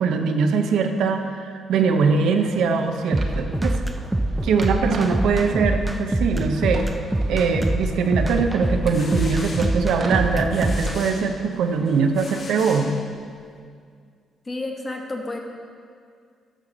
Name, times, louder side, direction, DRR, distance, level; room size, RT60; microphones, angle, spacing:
voice 1, 0.0-3.8 4.4-6.9 7.3-12.9, right 5 dB, 80° right, 5 dB, 0.6 m, -22 dB
sound 1, 2.4-12.1, right 3 dB, 45° right, 0.8 m, -41 dB
sound 2, 3.1-11.0, right 1 dB, 10° right, 0.4 m, -24 dB
sound 3, 8.6-13.5, left 3 dB, 45° left, 1.0 m, -40 dB
voice 2, 14.4-15.4, left 2 dB, 25° left, 1 dB, 1.2 m, -30 dB
11.5 x 5.9 x 3.9 m, 2.2 s
cardioid pair, 90°, 0 cm